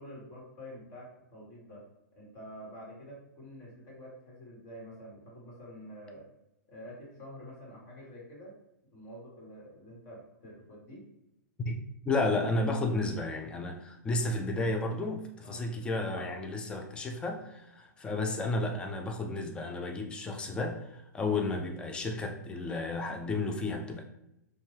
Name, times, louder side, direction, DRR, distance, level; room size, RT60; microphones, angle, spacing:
voice 1, 0.0-1.8 2.1-6.2 6.7-8.5 8.9-11.0 15.4-15.7, equal, 40° left, -4 dB, 1.4 m, -48 dB
voice 2, 11.6-24.0, left 2 dB, 10° left, 4 dB, 0.3 m, -32 dB
2.6 x 2.2 x 3.2 m, 0.85 s
hypercardioid pair, 135°, 10 cm